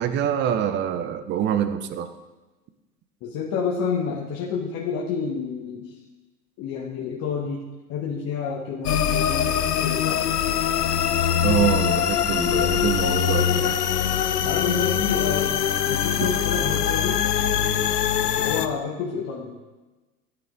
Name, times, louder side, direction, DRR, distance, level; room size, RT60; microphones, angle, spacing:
voice 1, 0.0-2.1 11.4-13.8, right 9 dB, 25° right, 11 dB, 0.7 m, -25 dB
voice 2, 3.2-5.9 6.6-7.6 7.9-9.5 9.8-10.2 14.4-15.6 15.9-17.2 18.4-19.7, left 6 dB, 30° left, -2 dB, 1.3 m, -29 dB
sound 1, 8.8-18.7, left 9 dB, 75° left, 0.8 m, -23 dB
13.0 x 9.2 x 3.8 m, 1.2 s
figure-of-eight pair, 95°, 48 cm